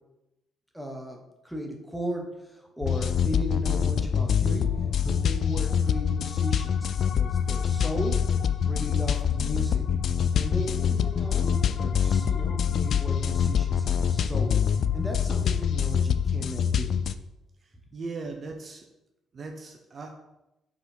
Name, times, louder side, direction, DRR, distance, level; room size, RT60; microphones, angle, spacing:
voice 1, 0.7-1.2 1.4-4.7 5.0-8.2 8.6-9.8 10.3-14.6 14.9-16.9, equal, ahead, 1 dB, 1.3 m, -36 dB
sound 1, 2.8-17.1, left 7 dB, 60° left, 0.3 m, -25 dB
voice 2, 17.9-18.9 19.3-20.1, right 3 dB, 45° right, 3 dB, 0.7 m, -38 dB
5.0 x 3.9 x 5.2 m, 0.94 s
cardioid pair, 90°, 0 cm